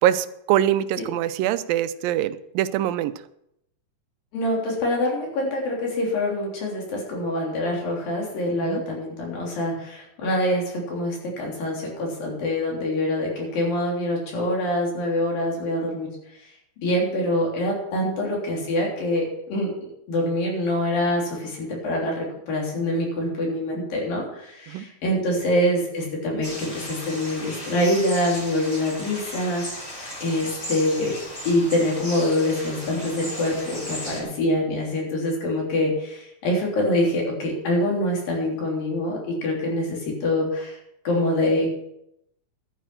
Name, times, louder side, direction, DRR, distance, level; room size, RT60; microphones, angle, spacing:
voice 1, 0.0-3.1 8.6-8.8 24.7-24.8 34.2-34.3, right 12 dB, 85° right, 13 dB, 2.4 m, -23 dB
voice 2, 4.3-16.1 16.8-29.9 30.2-31.1 31.4-40.8 41.0-41.7, left 1 dB, 85° left, -2 dB, 5.1 m, -25 dB
sound 1, 26.4-34.2, equal, 20° left, 3.6 m, -36 dB
12.0 x 9.2 x 5.9 m, 0.79 s
omnidirectional pair, 3.9 m